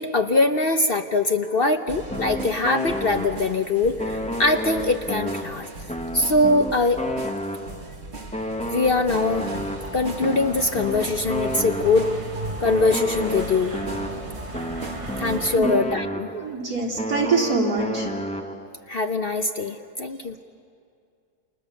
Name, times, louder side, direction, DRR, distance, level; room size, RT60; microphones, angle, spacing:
voice 1, 0.0-5.7 6.1-7.0 8.6-9.5 9.9-12.1 12.6-13.7 15.2-16.3 18.9-20.4, left 3 dB, 45° left, 6 dB, 0.9 m, -22 dB
sound 1, 1.9-15.4, right 2 dB, 45° right, 2.3 m, -39 dB
sound 2, 2.1-3.6 4.0-7.9 8.3-12.2 12.6-16.6 17.0-18.8, equal, 5° left, 0.8 m, -31 dB
sound 3, 9.3-15.6, right 2 dB, 25° right, 0.9 m, -36 dB
voice 2, 16.3-18.1, right 4 dB, 70° right, -3 dB, 4.0 m, -24 dB
29.0 x 28.0 x 7.0 m, 2.3 s
omnidirectional pair, 1.6 m